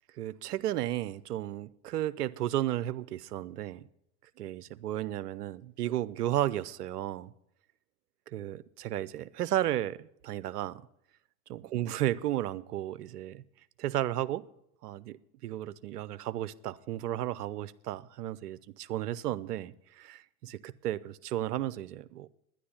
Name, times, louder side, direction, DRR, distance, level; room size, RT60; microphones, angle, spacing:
voice 1, 0.2-3.8 4.4-7.3 8.3-10.8 11.5-13.4 13.8-14.4 14.8-15.2 15.4-22.3, right 13 dB, 85° right, 0.7 m, -33 dB
11.0 x 10.5 x 7.1 m
hypercardioid pair, 85°, 45 cm